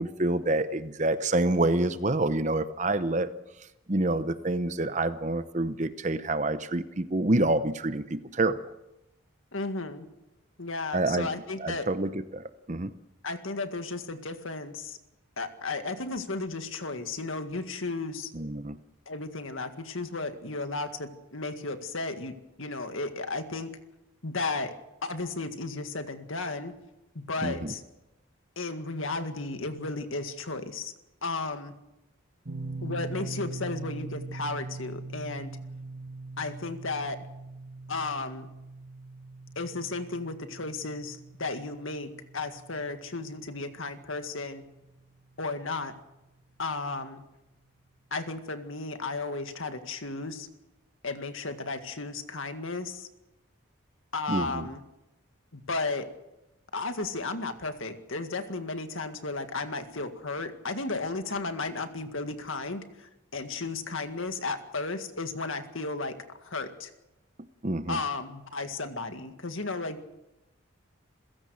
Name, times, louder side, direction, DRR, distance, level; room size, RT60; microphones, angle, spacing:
voice 1, 0.0-3.3 3.9-8.6 10.9-11.3 11.6-12.9 18.3-18.8 27.4-27.7 54.3-54.7 67.6-68.0, right 2 dB, 35° right, 12 dB, 0.9 m, -27 dB
voice 2, 9.5-10.1 10.6-11.9 13.2-15.0 15.4-18.3 19.1-23.8 24.2-24.8 25.0-26.7 27.2-27.8 28.6-30.9 31.2-31.7 32.8-35.6 36.4-37.3 37.9-38.5 39.6-44.6 45.4-45.9 46.6-47.2 48.1-50.5 51.0-53.1 54.1-54.8 55.5-56.1 56.7-66.9 67.9-70.0, left 3 dB, 70° left, 8 dB, 2.0 m, -34 dB
sound 1, 32.5-45.4, right 3 dB, 50° right, 1.6 m, -42 dB
28.0 x 16.5 x 6.5 m, 0.94 s
head